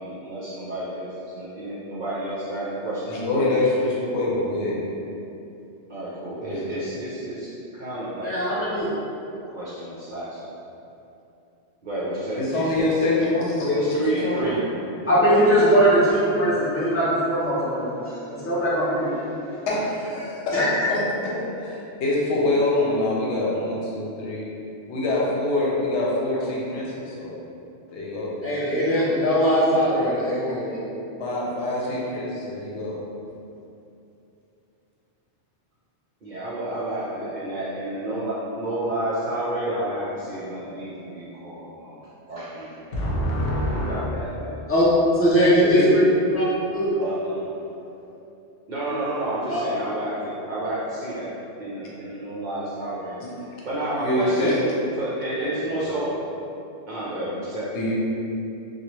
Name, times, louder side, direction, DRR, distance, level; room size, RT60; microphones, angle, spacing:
voice 1, 0.0-3.6 5.9-8.8 9.5-10.4 11.8-13.3 13.7-14.6 36.2-43.0 43.6-44.6 47.0-47.5 48.7-51.3 51.6-54.6 55.0-56.1 56.9-57.7, right 1 dB, 55° right, -8 dB, 0.6 m, -30 dB
voice 2, 3.1-4.8 6.4-6.7 12.4-14.6 19.7-21.3 21.6-24.4 24.9-27.3 27.9-28.3 31.2-33.0 42.9-44.0 45.6-45.9 53.2-53.3 54.0-54.6 55.7-55.8 57.7-58.0, left 2 dB, 80° left, -5 dB, 0.9 m, -25 dB
voice 3, 8.2-8.9 15.1-19.4 20.5-20.9 28.2-30.8 44.7-44.8 45.1-46.0 46.3-46.4 46.7-46.9 49.5-49.6, equal, 15° left, -9 dB, 0.5 m, -21 dB
3.0 x 2.3 x 2.9 m, 2.7 s
omnidirectional pair, 1.2 m